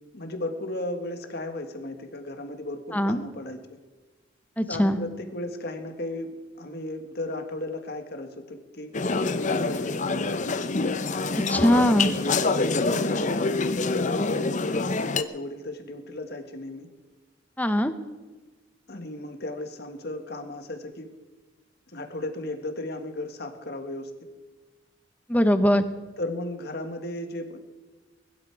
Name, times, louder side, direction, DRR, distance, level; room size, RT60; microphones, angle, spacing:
voice 1, 0.1-3.8 4.7-10.5 12.4-16.9 18.9-21.1 21.9-24.1 26.2-27.6, left 1 dB, 55° left, 6 dB, 1.7 m, -35 dB
voice 2, 4.6-5.0 11.5-12.1 17.6-17.9 25.3-25.8, equal, 10° left, 9 dB, 0.9 m, -21 dB
sound 1, 8.9-15.2, left 3 dB, 40° left, 0.7 m, -26 dB
21.5 x 12.0 x 4.7 m, 1.3 s
head